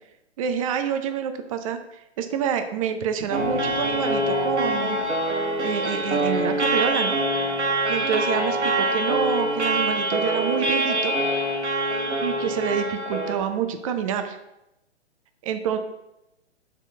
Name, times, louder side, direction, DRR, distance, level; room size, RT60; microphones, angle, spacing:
voice 1, 0.4-5.0 5.6-7.2 7.9-11.2 12.2-14.4 15.4-15.8, right 8 dB, 30° right, 8 dB, 0.5 m, -27 dB
sound 1, 3.3-13.4, right 1 dB, 85° right, 1.0 m, -24 dB
4.5 x 4.1 x 5.3 m, 0.90 s
figure-of-eight pair, 120°, 34 cm